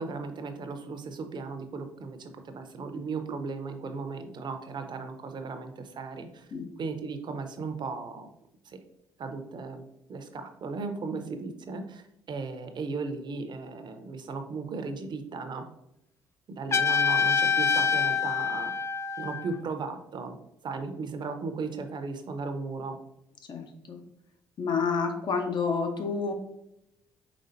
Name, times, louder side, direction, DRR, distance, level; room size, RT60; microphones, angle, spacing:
voice 1, 0.0-6.5 6.8-8.3 8.6-8.8 9.2-15.7 16.5-18.7 19.2-20.4 20.6-23.0, right 4 dB, 50° right, 7 dB, 0.7 m, -36 dB
Trumpet, 16.7-19.6, left 6 dB, 30° left, 0.4 m, -26 dB
voice 2, 23.5-24.0 24.6-26.3, left 5 dB, 50° left, 5 dB, 0.9 m, -29 dB
5.2 x 3.7 x 2.6 m, 0.83 s
hypercardioid pair, 55°, 10 cm